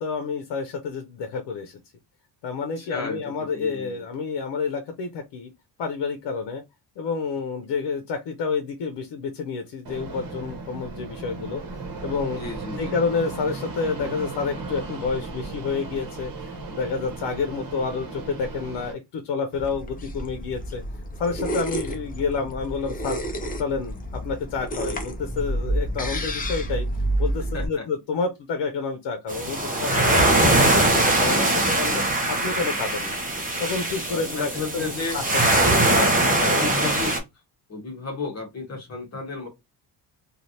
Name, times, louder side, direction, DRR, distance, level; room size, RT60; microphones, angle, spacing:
voice 1, 0.0-1.8 2.4-5.5 5.8-6.6 7.0-11.6 12.0-12.4 12.8-20.8 21.2-23.2 23.6-26.9 27.2-30.6 30.9-33.2 33.6-36.7, left 5 dB, 90° left, 0.7 m, -29 dB
voice 2, 2.8-4.0 12.4-13.0 27.5-27.8 29.9-30.9 34.1-35.2 35.9-36.2 36.5-37.1 37.7-39.5, left 4 dB, 40° left, 1.1 m, -33 dB
Fixed-wing aircraft airplane, 9.8-18.9, right 3 dB, 55° right, 1.0 m, -36 dB
sound 1, 19.5-27.7, right 1 dB, 20° left, 0.5 m, -29 dB
sound 2, 29.3-37.2, right 2 dB, 20° right, 0.7 m, -21 dB
3.2 x 2.4 x 2.7 m
cardioid pair, 150°, 41 cm